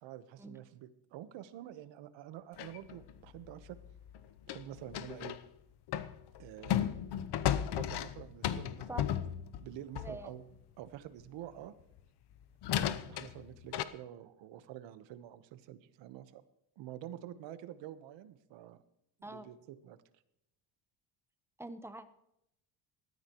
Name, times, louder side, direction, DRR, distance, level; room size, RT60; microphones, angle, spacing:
voice 1, 0.0-3.8 4.5-5.4 6.4-6.9 7.7-9.2 9.6-10.4 10.8-11.7 12.7-16.4 16.8-18.8 19.2-20.0, right 12 dB, 70° right, 12 dB, 1.2 m, -48 dB
sound 1, 2.6-5.4 5.9-10.3 12.0-12.1 12.6-13.8, left 10 dB, 60° left, 0.9 m, -35 dB
voice 2, 10.0-10.3 19.2-19.5 21.6-22.1, right 1 dB, 5° right, 10 dB, 0.9 m, -44 dB
20.0 x 13.5 x 3.1 m, 0.82 s
cardioid pair, 115°, 46 cm